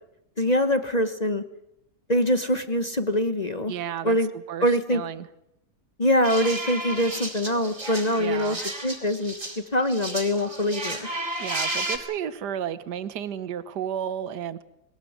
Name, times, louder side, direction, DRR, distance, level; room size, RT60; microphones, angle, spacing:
voice 1, 0.4-1.4 2.1-3.7 4.0-4.3 4.6-5.0 6.0-8.6 8.8-11.1, equal, 30° left, 10 dB, 1.0 m, -24 dB
voice 2, 3.7-5.3 8.2-8.6 11.4-14.6, right 9 dB, 70° right, 14 dB, 1.7 m, -32 dB
sound 1, 6.2-9.6 9.9-12.0, right 2 dB, 45° right, 4.9 m, -32 dB
21.5 x 19.5 x 9.4 m, 0.83 s
omnidirectional pair, 1.8 m